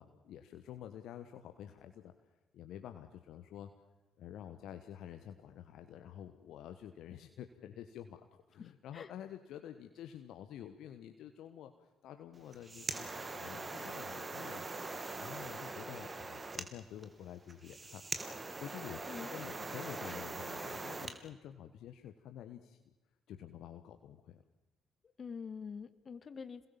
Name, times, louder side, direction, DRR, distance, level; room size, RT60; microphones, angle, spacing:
voice 1, 0.0-2.1 2.5-3.7 4.2-11.7 12.0-14.9 15.2-18.0 18.6-22.8 23.3-24.4, left 10 dB, 60° left, 7 dB, 1.4 m, -49 dB
voice 2, 8.6-9.1 19.1-19.5 25.2-26.7, left 6 dB, 40° left, 12 dB, 2.1 m, -46 dB
sound 1, 12.4-21.2, right 3 dB, 30° right, 3.1 m, -42 dB
28.0 x 21.0 x 7.4 m, 1.1 s
figure-of-eight pair, 45°, 0 cm